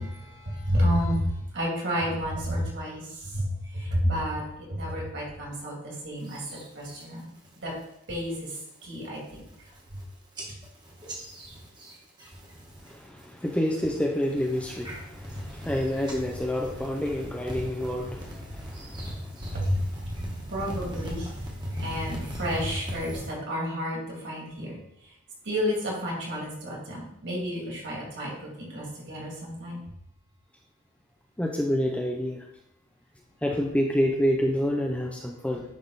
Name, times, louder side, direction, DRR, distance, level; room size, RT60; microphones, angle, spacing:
voice 1, 0.0-4.4 4.7-6.4 6.7-7.3 7.6-7.7 8.1-9.4 19.5-19.8 20.5-21.3 21.6-24.8 25.4-28.3 28.6-29.8, equal, 55° right, -3 dB, 2.4 m, -30 dB
sound 1, 6.2-7.0 7.4-7.8 8.2-8.6 9.0-9.1 9.3-10.0 10.4-12.9 13.2-13.7 14.2-23.3, equal, 20° right, 1.3 m, -39 dB
voice 2, 12.8-19.6 31.4-32.4 33.4-35.6, equal, 5° left, 0 dB, 0.5 m, -28 dB
10.0 x 3.6 x 4.0 m, 0.79 s
head